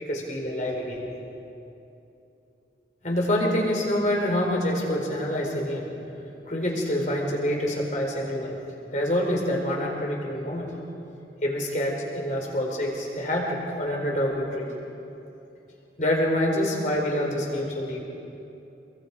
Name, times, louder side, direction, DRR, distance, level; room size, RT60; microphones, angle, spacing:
voice 1, 0.1-1.0 3.0-5.9 6.5-8.5 8.9-10.7 11.4-14.7 16.0-18.0, left 1 dB, 45° left, -1 dB, 4.6 m, -26 dB
27.5 x 22.0 x 5.0 m, 2.8 s
head